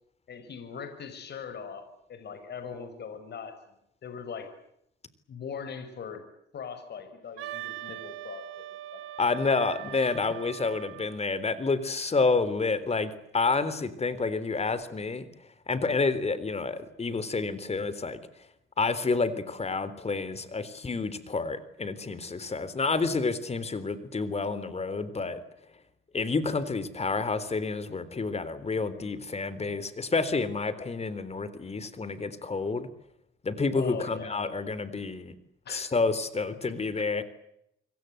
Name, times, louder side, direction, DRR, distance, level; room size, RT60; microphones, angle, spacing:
voice 1, 0.3-4.5 5.3-6.3 6.5-8.6 8.9-9.0 9.9-10.3 33.7-34.5 35.6-35.9 37.0-37.1, left 6 dB, 60° left, 8 dB, 6.2 m, -40 dB
Wind instrument woodwind instrument, 7.4-11.2, right 14 dB, 85° right, 1.9 m, -41 dB
voice 2, 9.2-15.2 15.7-18.2 18.8-25.4 26.1-32.9 33.4-35.3 35.7-37.2, left 4 dB, 30° left, 15 dB, 3.7 m, -29 dB
28.5 x 23.5 x 8.0 m, 0.78 s
cardioid pair, 90°, 20 cm